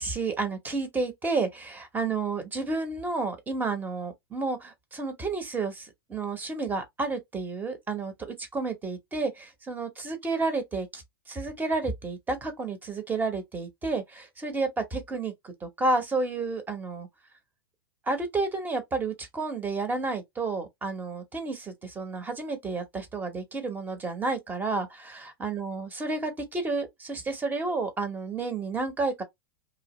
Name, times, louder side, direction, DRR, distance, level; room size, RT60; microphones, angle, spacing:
voice 1, 0.0-17.1 18.1-29.2, right 3 dB, 15° right, 1.0 m, -31 dB
3.0 x 2.4 x 3.0 m
hypercardioid pair, 105°, 13 cm